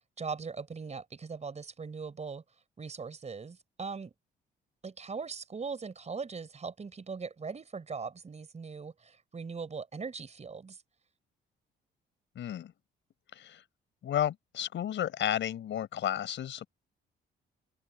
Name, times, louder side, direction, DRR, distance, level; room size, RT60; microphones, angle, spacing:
voice 1, 0.0-2.4 2.8-4.1 4.8-10.8, right 5 dB, 35° right, 4.7 m, -40 dB
voice 2, 12.3-12.7 13.3-13.6 14.0-16.7, left 10 dB, 70° left, 4.8 m, -32 dB
open air
cardioid pair, 90°, 20 cm